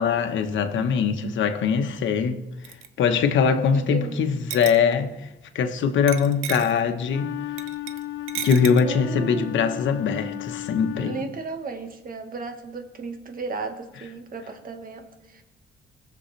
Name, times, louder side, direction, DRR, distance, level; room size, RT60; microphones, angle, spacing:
voice 1, 0.0-2.4 3.0-5.1 5.5-7.3 8.4-11.2, left 6 dB, 70° left, 1.2 m, -22 dB
sound 1, 2.6-2.9 4.5-5.0 6.1-6.8 7.6-8.0 8.3-8.8, right 11 dB, 85° right, 0.7 m, -32 dB
voice 2, 3.5-4.2 8.8-9.5 10.9-15.4, right 3 dB, 45° right, 1.5 m, -35 dB
Wind instrument woodwind instrument, 7.0-11.6, left 15 dB, 90° left, 0.6 m, -34 dB
19.5 x 7.2 x 3.3 m
cardioid pair, 90°, 20 cm